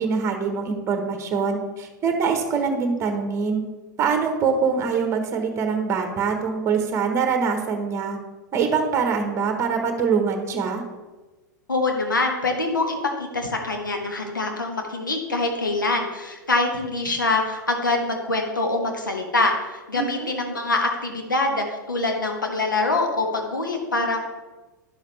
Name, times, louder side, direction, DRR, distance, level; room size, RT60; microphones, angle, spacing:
voice 1, 0.0-3.6 4.0-8.2 8.5-10.8 19.9-20.3, right 5 dB, 25° right, 5 dB, 1.2 m, -24 dB
voice 2, 11.7-24.2, left 2 dB, 80° left, 2 dB, 1.3 m, -24 dB
10.5 x 7.2 x 3.3 m, 1.2 s
figure-of-eight pair, 90°, 10 cm